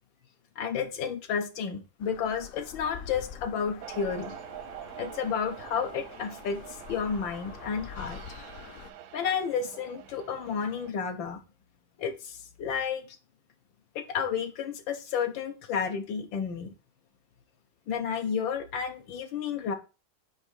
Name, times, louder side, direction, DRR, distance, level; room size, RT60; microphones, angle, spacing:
voice 1, 0.6-4.4 5.0-8.2 9.1-11.4 12.0-13.0 14.0-16.7 17.9-19.7, left 6 dB, 85° left, 1.8 m, -31 dB
sound 1, 2.0-8.9, left 8 dB, 65° left, 0.9 m, -46 dB
sound 2, 3.8-10.9, right 11 dB, 85° right, 1.4 m, -45 dB
8.6 x 2.9 x 6.2 m
omnidirectional pair, 2.0 m